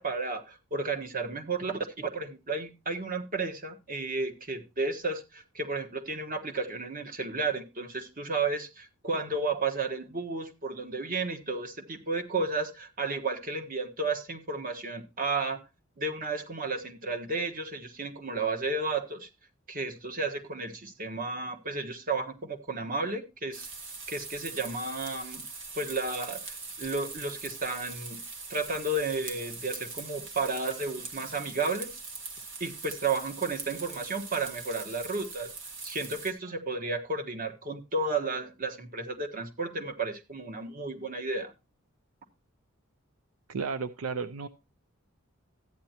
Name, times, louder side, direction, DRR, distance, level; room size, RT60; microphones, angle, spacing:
voice 1, 0.0-15.6 16.0-19.3 19.7-23.7 24.1-25.4 25.7-28.2 28.5-32.0 32.6-35.5 35.8-41.5, right 3 dB, 40° right, 5 dB, 1.3 m, -33 dB
sound 1, 23.5-36.3, right 4 dB, 65° right, 1.7 m, -42 dB
voice 2, 43.5-44.5, right 5 dB, 80° right, 12 dB, 0.6 m, -33 dB
13.5 x 9.2 x 2.9 m, 0.28 s
head